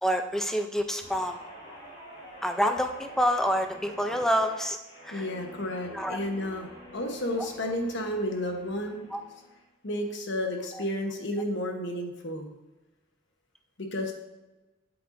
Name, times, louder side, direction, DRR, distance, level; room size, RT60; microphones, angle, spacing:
voice 1, 0.0-1.4 2.4-4.8 5.0-5.2 5.9-6.2 9.1-9.2, equal, ahead, 6 dB, 0.5 m, -27 dB
Guitar, 1.0-9.6 10.0-10.3, equal, 40° left, 2.4 m, -47 dB
voice 2, 5.1-9.0 9.8-12.5 13.8-14.1, left 1 dB, 65° left, 3 dB, 1.0 m, -32 dB
7.9 x 7.8 x 2.6 m, 1.1 s
head